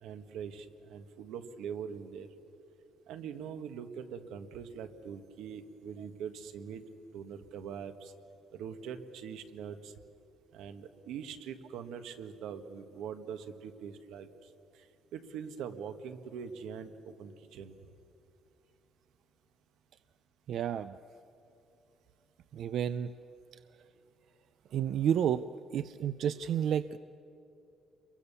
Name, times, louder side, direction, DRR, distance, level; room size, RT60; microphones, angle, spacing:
voice 1, 0.0-2.3 3.1-6.8 7.1-8.1 8.5-9.9 10.5-14.9 15.1-17.7, right 7 dB, 85° right, 9 dB, 1.6 m, -43 dB
voice 2, 20.5-21.0 22.5-23.1 24.7-25.4 25.7-27.0, right 9 dB, 55° right, 13 dB, 0.5 m, -30 dB
29.0 x 23.0 x 7.0 m, 2.8 s
cardioid pair, 155°, 0 cm